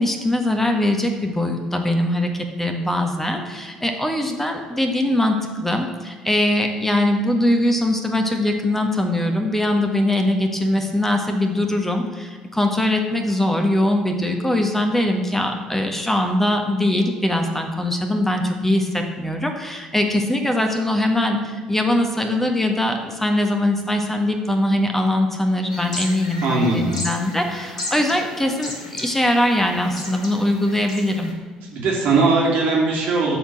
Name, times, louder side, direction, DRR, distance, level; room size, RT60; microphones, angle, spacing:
voice 1, 0.0-31.3, left 1 dB, 10° left, 4 dB, 1.6 m, -21 dB
sound 1, 25.7-31.3, left 1 dB, 80° left, 1.4 m, -34 dB
voice 2, 26.4-27.1 31.7-33.4, right 3 dB, 55° right, -3 dB, 2.5 m, -19 dB
13.0 x 4.4 x 7.3 m, 1.5 s
figure-of-eight pair, 55°, 3 cm